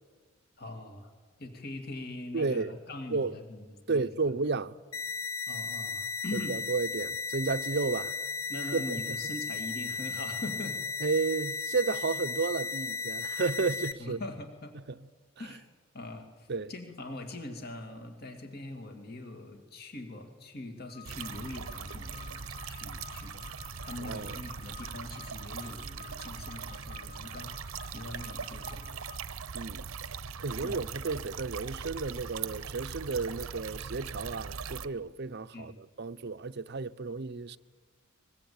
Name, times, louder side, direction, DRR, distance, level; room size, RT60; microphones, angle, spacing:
voice 1, 0.6-1.1 1.4-4.1 5.5-6.6 8.5-10.8 14.0-14.7 15.4-15.6 15.9-23.5 23.8-29.0 30.6-30.9 35.5-35.8, left 2 dB, 50° left, 2.6 m, -42 dB
voice 2, 2.3-2.8 3.1-3.4 3.9-4.7 6.3-8.1 8.7-9.2 11.0-14.2 14.9-15.0 16.5-16.7 24.0-24.4 29.5-29.9 30.4-37.6, right 4 dB, 55° right, 0.7 m, -32 dB
sound 1, 4.9-13.9, left 5 dB, 85° left, 1.2 m, -35 dB
sound 2, 20.9-29.2, left 10 dB, 20° left, 1.1 m, -52 dB
sound 3, 21.0-34.9, right 6 dB, 85° right, 0.9 m, -40 dB
22.5 x 21.5 x 8.8 m
head